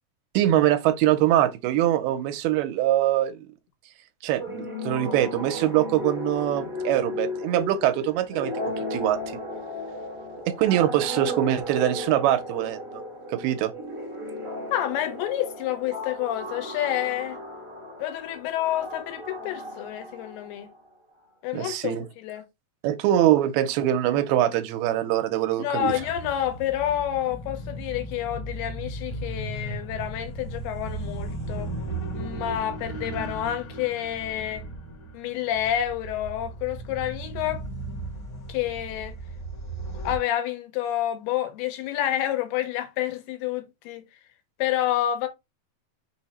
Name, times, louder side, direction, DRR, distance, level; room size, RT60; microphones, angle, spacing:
voice 1, 0.3-3.5 4.2-9.4 10.5-13.0 13.3-13.7 21.5-22.0 22.8-25.9, right 12 dB, 90° right, 2.5 m, -23 dB
sound 1, 4.4-20.8, left 1 dB, 40° right, 0.4 m, -35 dB
voice 2, 14.7-17.4 18.0-20.7 21.4-22.4 25.6-31.7 32.1-34.6 35.1-37.6 38.5-39.1 40.0-44.0 44.6-45.3, left 12 dB, 90° left, 2.8 m, -29 dB
sound 2, 25.8-40.2, right 2 dB, 65° left, 1.1 m, -36 dB
6.0 x 2.0 x 4.1 m
omnidirectional pair, 4.4 m